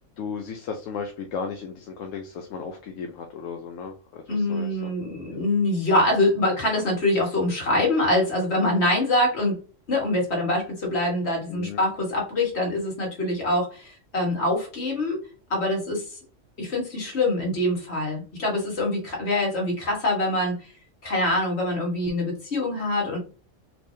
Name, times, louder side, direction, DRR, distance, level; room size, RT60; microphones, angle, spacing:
voice 1, 0.2-5.0 11.5-11.8, left 5 dB, 80° left, 4 dB, 1.0 m, -35 dB
voice 2, 4.3-9.6 9.9-15.2 15.5-16.2 16.6-20.7 21.0-23.2, left 1 dB, 55° left, -1 dB, 1.8 m, -24 dB
4.4 x 3.3 x 2.7 m, 0.35 s
omnidirectional pair, 1.3 m